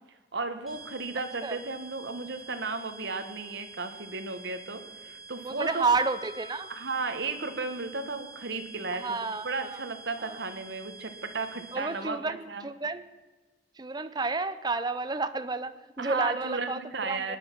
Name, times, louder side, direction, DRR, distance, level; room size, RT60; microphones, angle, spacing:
voice 1, 0.3-5.8 6.7-9.2 9.4-12.7 16.0-17.4, right 3 dB, 70° right, 8 dB, 1.4 m, -34 dB
sound 1, 0.7-12.1, right 4 dB, ahead, 3.4 m, -48 dB
voice 2, 5.4-6.7 8.9-9.7 10.2-10.4 11.7-13.0 13.8-17.4, right 3 dB, 20° right, 12 dB, 0.6 m, -31 dB
sound 2, 5.7-8.2, left 2 dB, 25° left, 0.7 m, -46 dB
19.0 x 9.6 x 6.0 m, 1.2 s
head